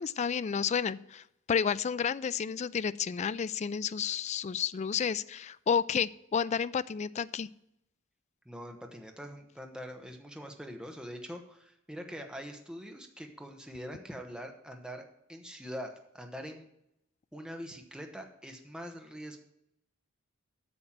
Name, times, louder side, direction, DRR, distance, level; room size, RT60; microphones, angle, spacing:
voice 1, 0.0-7.5, left 7 dB, 35° left, 17 dB, 0.3 m, -31 dB
voice 2, 8.4-16.7 17.3-19.4, equal, 5° right, 4 dB, 1.1 m, -43 dB
8.7 x 6.5 x 7.3 m, 0.80 s
head